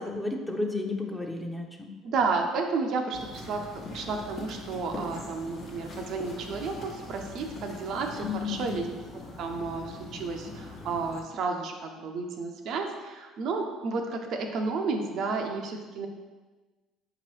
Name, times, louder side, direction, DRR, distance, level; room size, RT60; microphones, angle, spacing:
voice 1, 0.1-1.9 8.1-8.8, left 3 dB, 10° left, 2 dB, 0.6 m, -32 dB
voice 2, 2.0-8.9 9.4-16.1, right 4 dB, 60° right, 4 dB, 0.4 m, -32 dB
sound 1, 3.1-11.2, left 2 dB, 55° left, 1.0 m, -42 dB
5.1 x 2.9 x 3.1 m, 1.3 s
hypercardioid pair, 60°, 0 cm